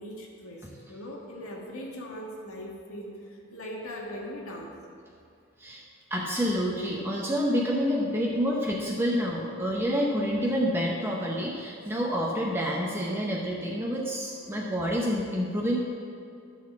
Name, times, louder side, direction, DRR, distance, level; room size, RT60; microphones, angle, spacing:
voice 1, 0.0-4.7, equal, 80° left, -1 dB, 1.7 m, -40 dB
voice 2, 6.1-15.8, equal, 10° right, -3 dB, 0.8 m, -28 dB
12.5 x 4.2 x 7.2 m, 2.5 s
head